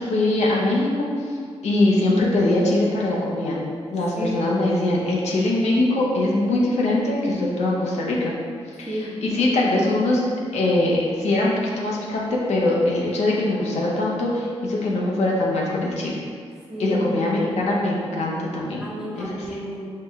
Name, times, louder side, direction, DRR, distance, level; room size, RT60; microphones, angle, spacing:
voice 1, 0.0-1.4 1.6-3.6 3.9-8.3 8.8-10.3 10.5-16.2 16.8-18.8 19.2-19.3, left 2 dB, 75° left, -4 dB, 0.7 m, -22 dB
voice 2, 8.9-9.8 16.7-17.2 18.8-19.9, equal, 5° right, -7 dB, 1.0 m, -32 dB
4.6 x 2.1 x 3.5 m, 2.2 s
cardioid pair, 85°, 11 cm